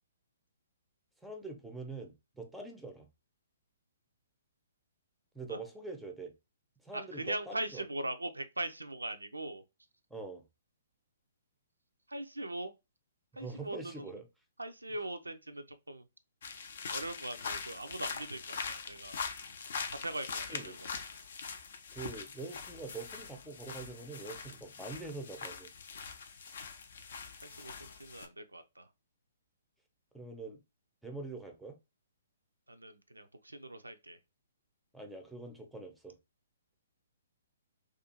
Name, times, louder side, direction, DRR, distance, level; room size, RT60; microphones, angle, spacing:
voice 1, 1.2-3.1 5.3-6.3 6.8-7.8 10.1-10.4 13.3-14.3 20.5-20.8 21.9-25.7 30.1-30.6 31.0-31.8 34.9-36.2, right 3 dB, ahead, 0.5 m, -44 dB
voice 2, 6.9-9.6 12.1-12.7 13.4-14.2 14.6-16.1 16.9-19.2 19.9-20.9 27.4-28.9 32.7-34.2, right 1 dB, 85° right, 0.4 m, -41 dB
sound 1, 16.4-28.3, left 5 dB, 55° left, 0.5 m, -43 dB
2.5 x 2.3 x 2.8 m
figure-of-eight pair, 125°, 0 cm